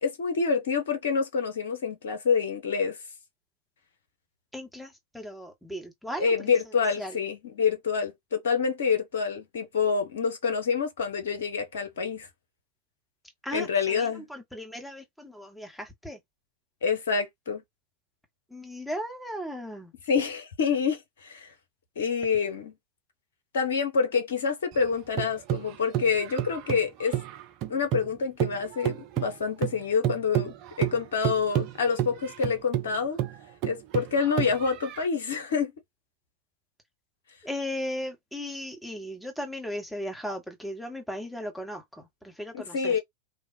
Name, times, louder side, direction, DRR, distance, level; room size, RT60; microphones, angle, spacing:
voice 1, 0.0-3.0 6.2-12.3 13.5-14.3 16.8-17.6 20.1-21.5 22.0-22.7 23.5-27.2 27.7-33.2 33.6-35.7 42.5-43.0, left 5 dB, 60° left, 1.0 m, -27 dB
voice 2, 4.5-6.5 7.0-7.2 13.4-16.2 18.5-19.9 37.4-43.0, equal, ahead, 1.3 m, -37 dB
sound 1, 24.7-28.1 28.4-35.1, right 13 dB, 40° right, 0.6 m, -31 dB
3.2 x 2.3 x 2.7 m
figure-of-eight pair, 90°, 0 cm